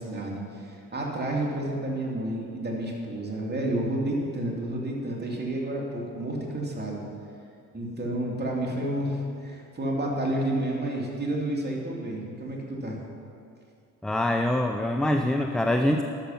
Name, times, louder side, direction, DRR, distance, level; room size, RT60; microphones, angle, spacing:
voice 1, 0.0-7.0 7.7-13.0, right 1 dB, 25° right, -2 dB, 2.8 m, -30 dB
voice 2, 14.0-16.0, left 1 dB, ahead, 4 dB, 0.5 m, -24 dB
11.5 x 6.6 x 5.8 m, 2.4 s
hypercardioid pair, 55°, 41 cm